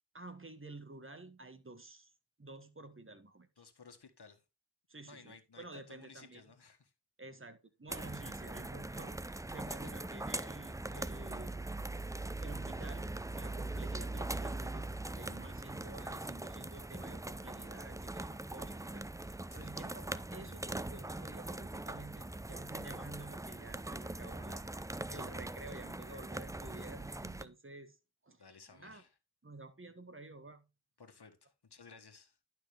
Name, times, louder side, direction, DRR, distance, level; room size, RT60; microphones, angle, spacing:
voice 1, 0.1-2.1 2.4-3.6 4.9-6.4 7.2-11.6 12.4-13.1 13.3-14.9 15.1-28.0 28.2-28.4 28.7-29.0 29.4-30.7, right 2 dB, 30° right, 1.4 m, -51 dB
voice 2, 3.6-4.4 5.0-6.9 9.7-9.9 19.5-20.0 28.4-29.1 31.0-32.4, left 5 dB, 70° left, 1.7 m, -57 dB
sound 1, 7.9-27.4, right 2 dB, 10° right, 0.4 m, -41 dB
11.0 x 5.9 x 3.5 m
wide cardioid pair, 50°, 41 cm